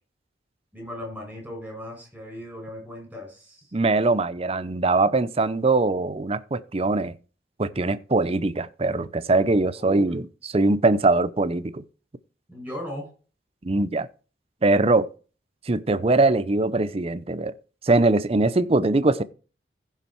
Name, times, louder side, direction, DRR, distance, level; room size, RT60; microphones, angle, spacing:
voice 1, 0.7-3.7 9.8-10.0 12.5-13.1, equal, 10° right, 6.7 m, -37 dB
voice 2, 3.7-7.1 7.6-11.8 13.6-14.1 14.6-15.1 15.7-17.5 17.8-19.2, right 2 dB, 35° right, 0.6 m, -22 dB
15.5 x 5.8 x 4.5 m
head